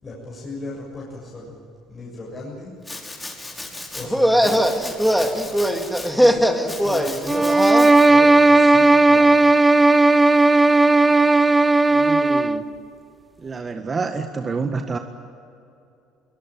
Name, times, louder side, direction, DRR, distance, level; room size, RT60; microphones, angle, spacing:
voice 1, 0.0-1.6 1.9-2.8 3.9-4.8 6.1-7.5 8.1-9.5, left 2 dB, 35° left, -3 dB, 7.0 m, -35 dB
Domestic sounds home sounds, 2.8-4.1 4.4-6.1 6.7-8.1, left 2 dB, 15° left, 5.8 m, -36 dB
sound 1, 4.0-7.9, equal, ahead, 2.5 m, -20 dB
sound 2, 7.3-12.7, right 2 dB, 15° right, 1.0 m, -15 dB
voice 2, 11.9-12.6 13.4-15.0, right 4 dB, 30° right, 6 dB, 1.6 m, -28 dB
23.5 x 20.0 x 9.0 m, 2.7 s
hypercardioid pair, 65°, 0 cm